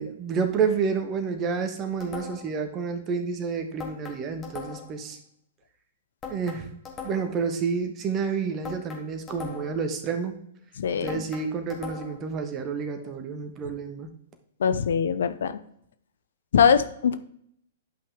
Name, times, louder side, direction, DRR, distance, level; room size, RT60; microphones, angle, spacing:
voice 1, 0.0-5.2 6.3-6.7 7.0-10.3 11.0-14.1, right 5 dB, 30° right, 7 dB, 1.2 m, -29 dB
sound 1, 2.0-2.6 3.8-5.0 6.2-7.4 8.6-9.9 11.1-12.3, left 6 dB, 20° left, 2.0 m, -40 dB
voice 2, 10.8-11.2 14.6-15.5 16.5-17.2, left 7 dB, 65° left, 12 dB, 0.6 m, -22 dB
11.0 x 5.6 x 3.5 m, 0.69 s
figure-of-eight pair, 110°, 0 cm